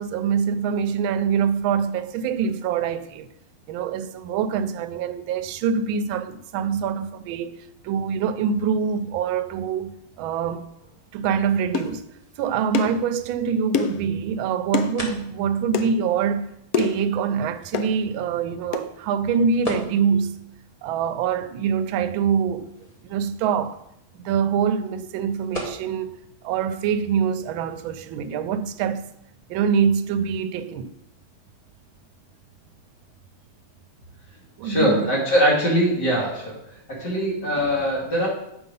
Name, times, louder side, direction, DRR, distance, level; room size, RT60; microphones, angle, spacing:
voice 1, 0.0-3.3 3.7-7.6 7.8-10.7 11.1-12.1 12.4-16.5 16.8-20.3 20.8-22.7 23.0-23.8 24.1-29.0 29.5-30.9 34.6-35.1, right 7 dB, 80° right, 1.4 m, -24 dB
sound 1, 10.7-28.4, left 1 dB, 20° left, 1.2 m, -43 dB
sound 2, 11.7-11.9 12.7-13.0 13.7-14.0 14.7-14.9 15.7-15.9 16.7-17.1 17.7-17.9 18.7-18.9, left 6 dB, 85° left, 0.7 m, -25 dB
voice 2, 34.6-36.6 36.9-38.3, equal, 55° left, 3.1 m, -22 dB
7.9 x 5.3 x 5.4 m
omnidirectional pair, 2.2 m